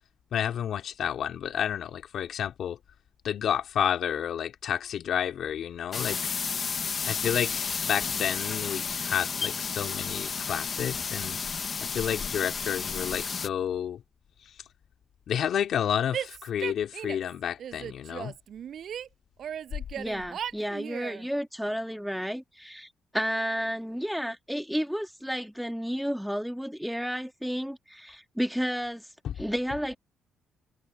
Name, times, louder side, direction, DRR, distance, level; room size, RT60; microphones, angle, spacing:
voice 1, 0.3-2.8 3.2-6.4 7.1-11.4 11.8-14.0 14.4-14.5 15.3-18.3 29.2-29.3, left 9 dB, 65° left, 3.1 m, -30 dB
sound 1, 5.9-13.5, left 5 dB, 40° left, 1.4 m, -32 dB
Female speech woman speaking / Yell, 16.1-17.3 17.6-19.1 19.4-21.2, right 9 dB, 65° right, 7.7 m, -37 dB
voice 2, 20.0-29.1 29.4-30.0, equal, ahead, 2.9 m, -32 dB
cardioid pair, 90°, 0 cm